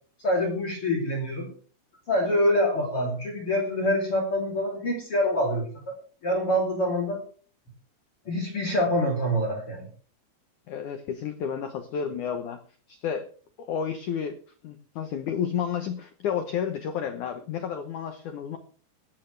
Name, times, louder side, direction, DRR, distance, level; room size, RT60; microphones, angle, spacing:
voice 1, 0.2-1.5 2.1-6.0 6.2-7.2 8.3-9.9, equal, 35° left, 1 dB, 3.5 m, -25 dB
voice 2, 10.7-12.6 12.9-13.3 13.6-14.4 14.6-18.6, left 8 dB, 90° left, 8 dB, 1.7 m, -31 dB
18.0 x 15.0 x 3.4 m, 0.43 s
omnidirectional pair, 5.1 m